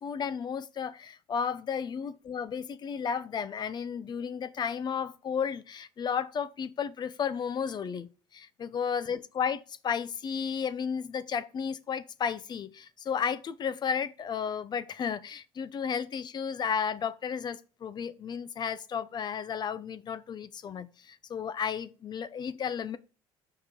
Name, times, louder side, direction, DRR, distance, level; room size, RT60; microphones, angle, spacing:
voice 1, 0.0-23.0, left 7 dB, 40° left, 0.6 m, -33 dB
6.5 x 4.9 x 4.5 m
supercardioid pair, 80°, 11 cm